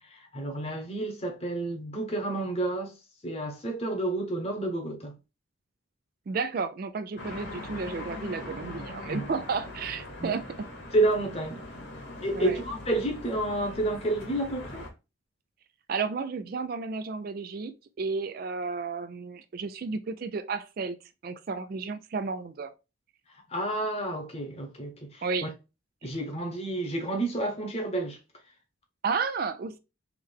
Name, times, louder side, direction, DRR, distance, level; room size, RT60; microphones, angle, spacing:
voice 1, 0.0-3.0 3.2-5.2 9.0-9.3 10.2-10.4 10.9-11.6 12.2-14.8 23.3-25.5 26.0-28.2, right 2 dB, 30° left, 1.0 m, -30 dB
voice 2, 6.3-10.7 12.3-12.6 15.9-21.0 21.2-22.7 25.2-25.5 29.0-29.8, right 4 dB, 45° right, 0.3 m, -32 dB
sound 1, 7.2-14.9, left 1 dB, 50° left, 1.2 m, -41 dB
3.6 x 3.3 x 3.4 m
head